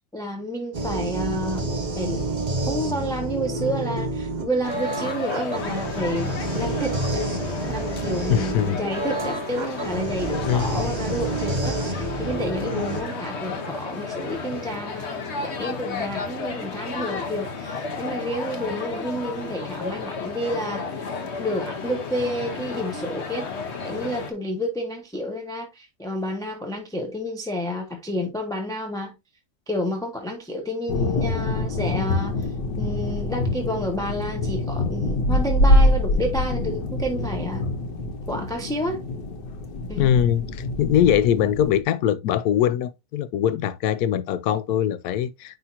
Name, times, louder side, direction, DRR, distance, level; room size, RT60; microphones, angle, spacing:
voice 1, 0.1-1.7 2.0-2.2 2.7-7.2 7.7-20.9 21.4-23.5 23.8-29.1 29.7-32.5 32.8-37.7 38.3-39.0 39.9-40.1, equal, 5° left, 0.8 m, -30 dB
sound 1, 0.7-13.0, right 2 dB, 30° right, 1.0 m, -29 dB
sound 2, 4.6-24.3, left 4 dB, 45° left, 1.3 m, -33 dB
voice 2, 8.3-8.9 10.5-10.9 40.0-45.6, left 10 dB, 70° left, 1.1 m, -22 dB
sound 3, 30.9-41.8, left 1 dB, 85° left, 1.8 m, -24 dB
9.9 x 3.8 x 2.7 m
omnidirectional pair, 1.8 m